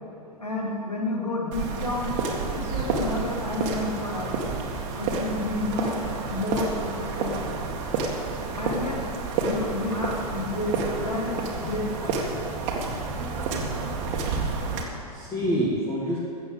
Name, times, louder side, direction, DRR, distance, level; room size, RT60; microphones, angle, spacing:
voice 1, 0.4-2.1 2.5-4.3 4.9-6.0 6.3-7.6 8.6-9.0 9.4-12.2, left 2 dB, 80° left, -3 dB, 3.4 m, -30 dB
sound 1, 1.5-14.8, right 4 dB, 35° right, 1.9 m, -29 dB
voice 2, 15.1-16.2, equal, 15° left, -5 dB, 2.1 m, -28 dB
13.5 x 7.9 x 8.2 m, 2.7 s
figure-of-eight pair, 105°, 20 cm